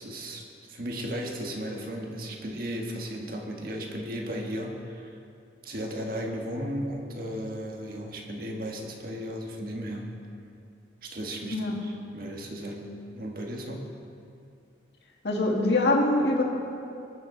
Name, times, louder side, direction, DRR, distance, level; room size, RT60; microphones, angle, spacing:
voice 1, 0.0-5.2 5.6-10.1 11.0-13.9, equal, 50° right, 1 dB, 1.6 m, -35 dB
voice 2, 11.5-11.8 15.2-16.4, left 2 dB, 60° left, -1 dB, 1.9 m, -24 dB
21.0 x 9.8 x 4.0 m, 2.5 s
head